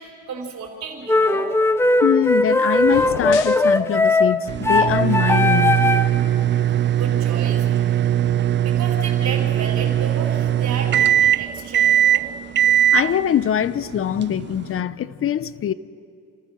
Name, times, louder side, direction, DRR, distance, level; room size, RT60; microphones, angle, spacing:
voice 1, 0.0-1.5 6.9-7.7 8.6-12.3, right 5 dB, 65° right, 4.6 m, -33 dB
sound 1, 1.1-6.2, left 2 dB, 10° left, 0.6 m, -18 dB
voice 2, 2.0-5.9 12.7-15.7, left 9 dB, 45° left, 0.7 m, -23 dB
sound 2, 2.8-3.7, left 11 dB, 90° left, 0.8 m, -31 dB
sound 3, 4.5-14.8, right 11 dB, 40° right, 0.4 m, -20 dB
29.0 x 14.0 x 6.5 m
cardioid pair, 90°, 30 cm